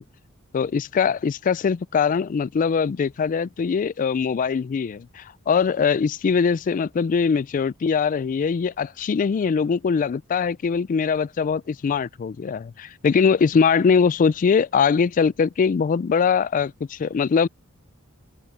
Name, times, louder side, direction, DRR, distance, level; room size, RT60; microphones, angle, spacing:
voice 1, 0.5-17.5, left 6 dB, 40° left, 0.3 m, -22 dB
open air
head